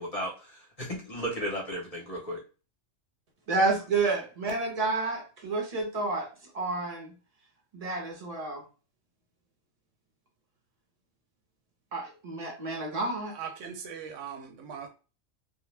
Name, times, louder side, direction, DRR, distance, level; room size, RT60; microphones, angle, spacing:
voice 1, 0.0-2.4, equal, 40° left, 0.5 m, -35 dB
voice 2, 3.5-7.1 7.7-8.6 11.9-13.4, right 3 dB, 40° right, 0.6 m, -30 dB
voice 3, 13.4-14.9, right 7 dB, 70° right, 0.9 m, -40 dB
2.2 x 2.1 x 3.1 m
omnidirectional pair, 1.4 m